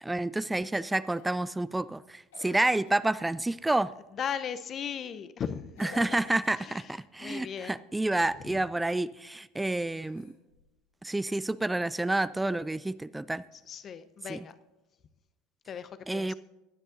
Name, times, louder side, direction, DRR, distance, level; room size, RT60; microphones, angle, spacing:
voice 1, 0.0-3.9 5.8-10.3 11.0-13.4 14.3-14.4 16.1-16.3, right 2 dB, 10° right, 17 dB, 0.3 m, -29 dB
Cough, 1.2-1.5 2.3-3.1 4.3-4.6 5.8-6.8 9.9-10.7 12.2-12.3, left 5 dB, 75° left, 1.8 m, -52 dB
voice 2, 4.1-6.0 6.6-6.9 7.2-7.8 8.5-8.6 13.7-14.6 15.7-16.3, left 8 dB, 40° left, 12 dB, 0.7 m, -37 dB
19.0 x 9.9 x 2.6 m, 1.1 s
hypercardioid pair, 75°, 0 cm